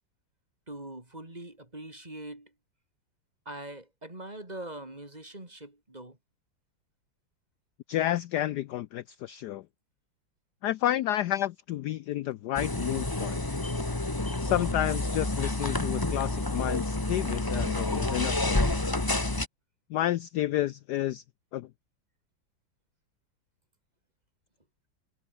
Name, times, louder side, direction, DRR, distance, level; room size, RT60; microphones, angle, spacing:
voice 1, 0.7-2.5 3.5-6.2, right 1 dB, 20° right, 3.5 m, -42 dB
voice 2, 7.9-9.6 10.6-13.4 14.4-18.7 19.9-21.2 21.5-21.7, left 13 dB, 70° left, 1.0 m, -30 dB
sound 1, 12.6-19.5, left 2 dB, 15° left, 1.3 m, -29 dB
omnidirectional pair, 2.1 m